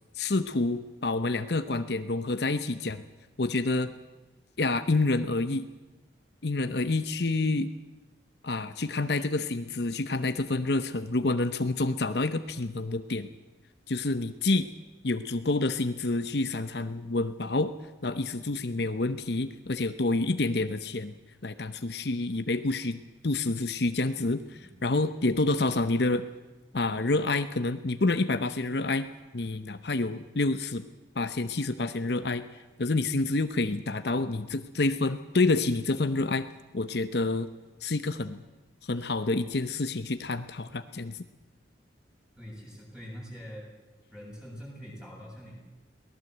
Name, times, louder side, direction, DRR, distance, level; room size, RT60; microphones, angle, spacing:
voice 1, 0.1-3.0 3.4-3.9 4.6-5.6 6.4-7.7 8.4-13.3 13.9-14.7 15.0-17.7 18.0-21.1 21.4-26.2 26.7-29.1 29.3-30.8 31.2-32.4 32.8-36.5 36.7-37.5 37.8-38.4 38.8-41.2, left 2 dB, 65° left, 10 dB, 0.9 m, -28 dB
voice 2, 42.4-43.7 44.1-45.5, equal, 5° right, -2 dB, 7.4 m, -44 dB
23.5 x 18.0 x 8.0 m, 1.2 s
head